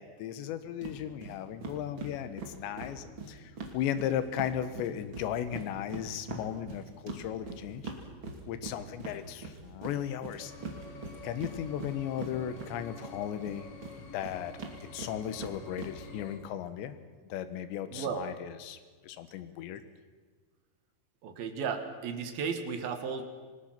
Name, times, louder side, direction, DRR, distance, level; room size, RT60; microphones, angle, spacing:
voice 1, 0.0-7.9 8.5-10.5 11.2-13.7 14.0-14.5 14.9-17.0 17.3-19.8, left 10 dB, 75° left, 11 dB, 3.4 m, -36 dB
sound 1, 0.8-1.0 1.2-1.3 1.6-4.5 4.8-13.1 13.4-15.9, right 4 dB, 35° right, 2.6 m, -42 dB
sound 2, 10.4-16.4, left 3 dB, 45° left, 2.1 m, -49 dB
voice 2, 17.9-18.3 21.2-23.2, right 6 dB, 60° right, 7 dB, 3.1 m, -34 dB
28.0 x 19.5 x 6.0 m, 1.5 s
omnidirectional pair, 5.4 m